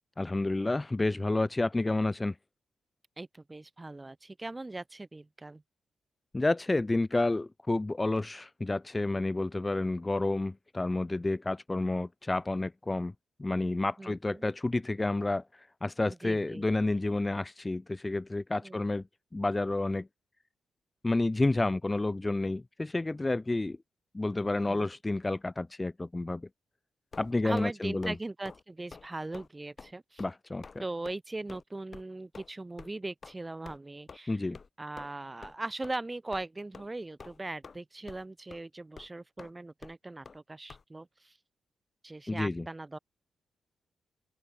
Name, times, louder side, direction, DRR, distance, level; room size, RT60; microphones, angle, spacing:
voice 1, 0.2-2.3 6.3-13.1 13.4-19.0 19.3-20.1 21.0-23.8 24.1-26.5 27.2-28.2 30.2-30.6 34.3-34.6 42.3-42.7, left 2 dB, 25° left, 0.3 m, -30 dB
voice 2, 3.2-5.6 14.0-14.4 16.2-16.7 18.6-18.8 24.7-24.9 27.4-30.2 30.8-34.4 34.8-41.3 42.0-43.0, right 2 dB, 25° right, 2.4 m, -40 dB
sound 1, 27.1-27.7 28.0-28.2 28.4-28.6 28.9-29.1 29.3-29.5 29.8-29.9 30.2-30.3 30.6-30.8 31.0-31.2 31.5-31.6 31.9-32.0 32.3-32.5 32.8-32.9 33.2-33.3 33.6-33.8 34.1-34.2 34.5-34.7 35.0-35.1 35.4-35.5 35.8-35.9 36.3-36.4 36.7-36.9 37.2-37.8 38.1-38.2 38.5-38.6 39.0-39.1 39.4-39.5 39.8-39.9 40.2-40.4 40.7-40.8, left 4 dB, 45° left, 1.7 m, -48 dB
open air
supercardioid pair, 50°, 0 cm